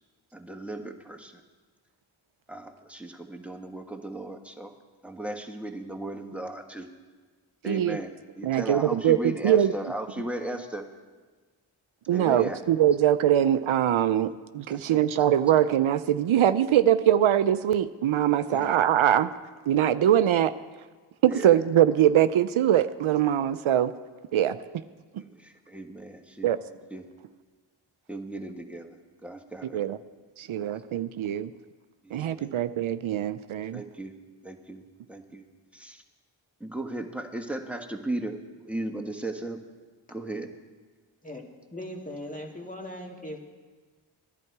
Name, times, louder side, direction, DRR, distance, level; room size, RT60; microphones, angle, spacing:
voice 1, 0.3-1.4 2.5-4.7 5.0-6.9 7.6-10.8 12.1-12.6 14.7-15.0 18.5-18.7 21.3-21.6 25.2-26.5 26.9-27.1 28.1-29.8 30.6-30.8 32.0-32.6 33.7-34.1 34.4-35.5 35.7-36.0 36.6-39.6 40.1-40.5, right 1 dB, 5° right, 4 dB, 1.4 m, -36 dB
voice 2, 7.6-8.0 8.4-9.7 12.1-19.3 19.7-20.5 21.2-23.9 24.3-24.6 25.1-25.2 26.4-26.6 29.7-30.0 30.4-31.5 32.1-33.8, right 11 dB, 75° right, 13 dB, 0.5 m, -22 dB
voice 3, 41.2-43.4, left 1 dB, 15° left, 0 dB, 2.0 m, -39 dB
16.0 x 11.0 x 4.7 m, 1.4 s
cardioid pair, 45°, 49 cm